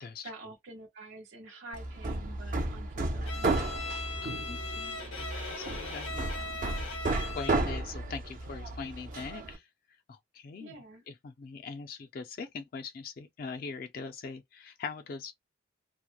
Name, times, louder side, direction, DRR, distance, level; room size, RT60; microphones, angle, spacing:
voice 1, 0.2-4.1 10.6-11.0, right 2 dB, 75° right, 1.0 m, -48 dB
Hammer, 1.7-9.6, right 2 dB, 40° right, 0.5 m, -33 dB
Bowed string instrument, 3.3-7.8, left 3 dB, 80° left, 0.7 m, -39 dB
voice 2, 4.2-6.3 6.7-6.9 7.3-9.7 10.1-10.7 11.1-15.3, left 5 dB, 45° left, 0.3 m, -42 dB
2.8 x 2.0 x 2.2 m
head